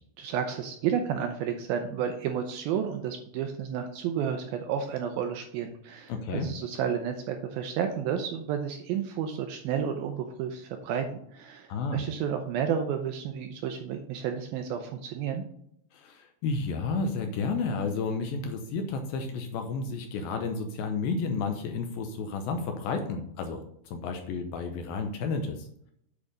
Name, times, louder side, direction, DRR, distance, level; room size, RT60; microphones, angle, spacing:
voice 1, 0.2-11.1 11.3-15.4, right 8 dB, 85° right, 5 dB, 2.2 m, -31 dB
voice 2, 6.1-6.5 11.7-12.0 15.9-25.7, left 4 dB, 75° left, 5 dB, 2.3 m, -31 dB
8.6 x 4.8 x 5.1 m, 0.71 s
omnidirectional pair, 4.8 m